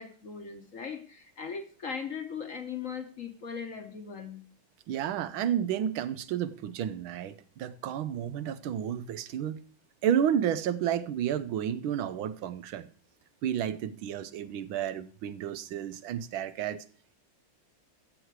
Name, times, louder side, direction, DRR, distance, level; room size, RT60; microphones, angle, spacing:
voice 1, 0.0-4.4, left 6 dB, 45° left, 1.3 m, -39 dB
voice 2, 4.9-9.6 10.0-12.9 13.4-16.8, right 9 dB, 80° right, 1.6 m, -31 dB
13.5 x 8.1 x 4.7 m
omnidirectional pair, 2.2 m